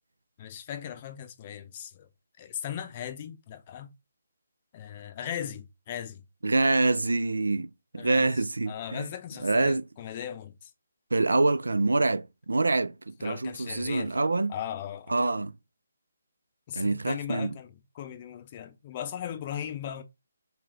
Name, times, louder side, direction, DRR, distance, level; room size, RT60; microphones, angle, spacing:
voice 1, 0.4-2.1 2.4-3.9 4.7-6.2 8.0-10.7 13.2-14.2 14.5-15.1 16.7-20.0, left 10 dB, 35° left, 0.6 m, -38 dB
voice 2, 6.4-9.0 9.4-9.8 11.1-14.5 15.1-15.5 16.7-17.5, right 2 dB, 85° right, 0.4 m, -26 dB
3.3 x 3.1 x 3.7 m
figure-of-eight pair, 150°, 0 cm